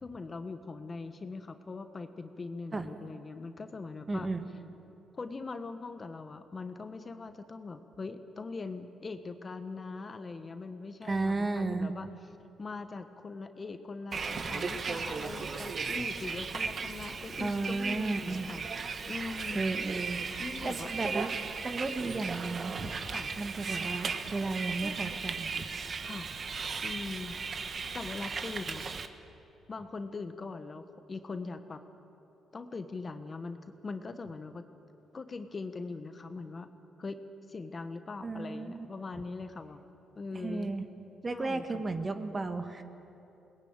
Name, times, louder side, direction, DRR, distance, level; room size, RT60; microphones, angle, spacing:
voice 1, 0.0-4.3 5.1-12.1 12.6-18.6 19.1-19.7 20.4-21.2 23.1-23.3 26.0-26.3 26.8-27.7 27.9-28.9 29.7-31.8 32.5-34.6 35.1-36.7 37.0-37.2 37.5-39.8 40.1-40.7 41.3-41.8, left 3 dB, 35° left, 9 dB, 1.2 m, -41 dB
voice 2, 4.1-4.5 11.0-11.9 17.4-18.5 19.5-20.2 20.6-21.4 21.6-23.0 23.4-25.7 38.2-38.9 40.3-40.9 41.2-42.8, right 3 dB, 30° right, 7 dB, 1.6 m, -34 dB
Bus, 14.1-29.1, right 5 dB, 45° right, 1.3 m, -36 dB
22.0 x 19.5 x 8.9 m, 3.0 s
cardioid pair, 90°, 0 cm